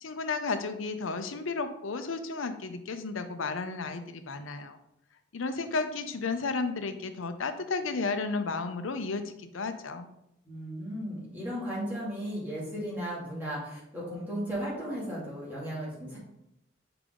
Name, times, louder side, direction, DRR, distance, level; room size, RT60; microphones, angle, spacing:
voice 1, 0.0-4.8 5.3-10.1, left 4 dB, 85° left, 8 dB, 0.7 m, -33 dB
voice 2, 10.4-16.2, equal, 10° right, -7 dB, 2.5 m, -35 dB
6.8 x 4.9 x 3.7 m, 0.81 s
head